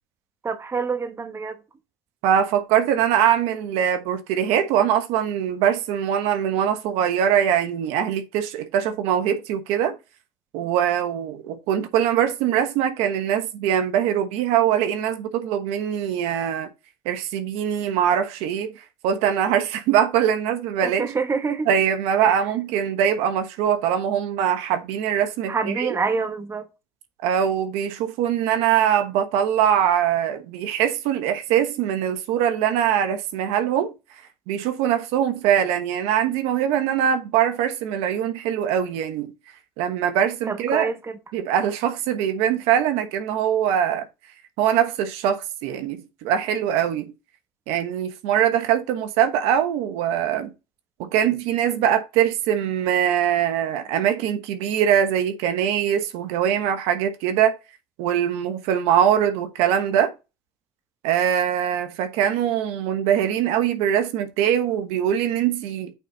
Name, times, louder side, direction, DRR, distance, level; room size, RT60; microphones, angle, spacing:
voice 1, 0.4-1.6 20.8-21.7 22.2-22.4 25.5-26.7 40.5-40.9, right 4 dB, 25° right, 1.3 m, -26 dB
voice 2, 2.2-9.9 10.5-16.7 17.0-18.7 19.0-21.1 21.7-25.9 27.2-33.9 34.5-39.3 39.8-40.9 41.3-44.1 44.6-47.1 47.7-50.5 51.0-57.6 58.0-60.1 61.0-65.9, right 9 dB, 80° right, 1.2 m, -22 dB
8.9 x 4.2 x 4.0 m
supercardioid pair, 90°, 10 cm